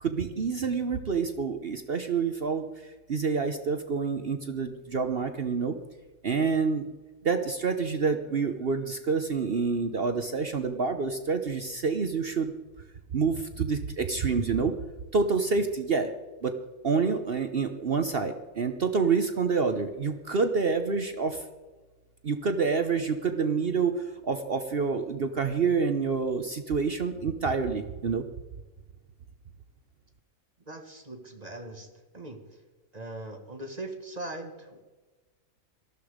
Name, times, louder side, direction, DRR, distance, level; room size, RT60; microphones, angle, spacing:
voice 1, 0.0-2.6 3.1-5.7 6.2-6.8 7.2-12.5 13.1-14.7 15.1-16.1 16.4-16.6 16.8-21.4 22.2-28.2, right 5 dB, 45° right, 7 dB, 1.1 m, -27 dB
voice 2, 30.7-31.9 32.1-32.4 32.9-34.8, right 2 dB, 30° right, 4 dB, 2.0 m, -40 dB
19.0 x 13.5 x 5.1 m, 1.2 s
omnidirectional pair, 1.4 m